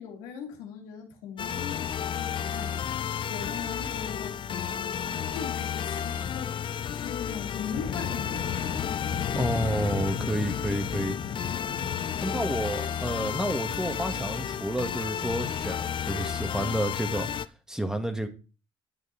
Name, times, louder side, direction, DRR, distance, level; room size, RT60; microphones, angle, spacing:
voice 1, 0.0-8.9 12.1-12.4, left 7 dB, 90° left, 2.0 m, -40 dB
sound 1, 1.4-17.5, left 8 dB, 50° left, 0.6 m, -32 dB
sound 2, 7.7-12.7, left 7 dB, 65° left, 1.5 m, -35 dB
voice 2, 9.3-11.2 12.2-17.3 17.7-18.3, right 1 dB, 5° right, 2.1 m, -30 dB
10.5 x 6.4 x 4.3 m
supercardioid pair, 70°, 11 cm